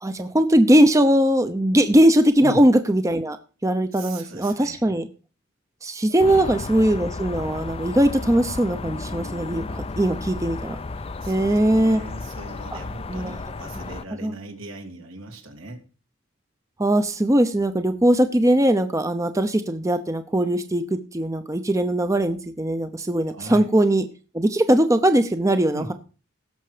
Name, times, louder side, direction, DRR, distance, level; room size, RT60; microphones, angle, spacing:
voice 1, 0.0-3.4 3.6-5.1 5.8-10.8 11.3-12.0 12.7-12.8 13.1-13.4 14.2-14.3 16.8-24.0 24.3-25.9, right 1 dB, 15° right, 9 dB, 0.7 m, -20 dB
voice 2, 3.9-4.9 6.3-6.8 11.2-15.8 23.3-23.6 25.7-25.9, right 1 dB, 80° right, 3 dB, 2.8 m, -38 dB
sound 1, 6.2-14.0, left 3 dB, 30° left, 0.5 m, -33 dB
17.0 x 6.7 x 5.0 m, 0.36 s
head